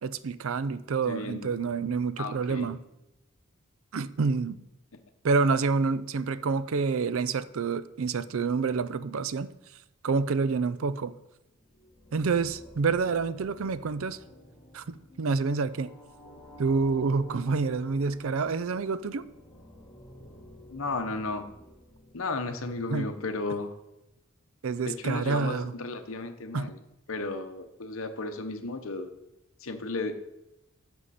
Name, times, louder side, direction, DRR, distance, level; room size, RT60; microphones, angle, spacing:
voice 1, 0.0-2.8 3.9-4.6 5.2-9.5 10.0-11.1 12.1-14.2 14.7-15.9 16.6-19.2 22.9-23.1 24.6-25.7 26.5-26.7, right 4 dB, 70° right, 14 dB, 0.4 m, -28 dB
voice 2, 1.1-1.5 2.2-2.7 20.7-21.5 22.1-23.8 24.8-26.8 27.1-29.1 29.6-30.2, left 3 dB, 70° left, 8 dB, 0.9 m, -34 dB
sound 1, 11.4-22.7, equal, 15° left, 2.4 m, -51 dB
11.0 x 6.4 x 4.2 m, 0.92 s
head